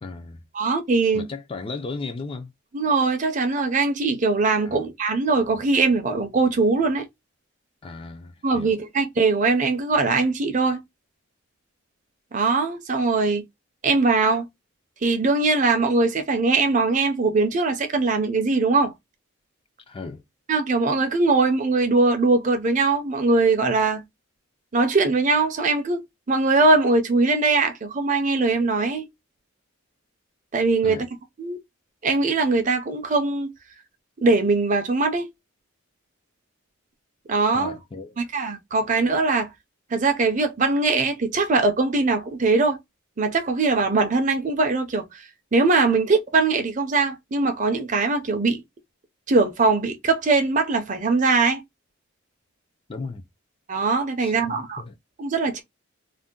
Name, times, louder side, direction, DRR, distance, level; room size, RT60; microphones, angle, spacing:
voice 1, 0.0-0.4 1.1-2.5 4.7-4.9 7.8-8.8 19.9-20.2 30.8-31.1 37.5-38.2 52.9-53.2 54.2-55.0, left 3 dB, 25° left, 0.3 m, -35 dB
voice 2, 0.5-1.3 2.7-7.1 8.4-10.8 12.3-13.4 13.8-14.5 15.0-18.9 20.5-24.0 24.7-29.1 30.5-31.1 31.4-31.6 32.0-33.5 34.2-35.3 37.3-37.8 38.2-39.5 39.9-42.8 43.2-45.2 45.5-48.6 49.3-51.6 53.7-54.8 55.2-55.6, right 3 dB, 35° right, 0.5 m, -21 dB
2.5 x 2.1 x 3.6 m
head